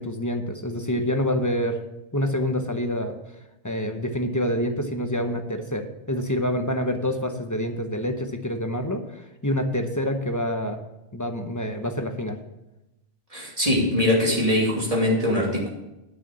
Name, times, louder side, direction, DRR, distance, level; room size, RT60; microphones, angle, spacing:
voice 1, 0.0-1.8 2.1-3.2 3.6-10.8 11.1-12.4, equal, 20° left, 5 dB, 0.8 m, -27 dB
voice 2, 13.3-15.7, left 1 dB, 30° right, -3 dB, 2.8 m, -22 dB
9.0 x 6.5 x 6.9 m, 0.96 s
omnidirectional pair, 1.2 m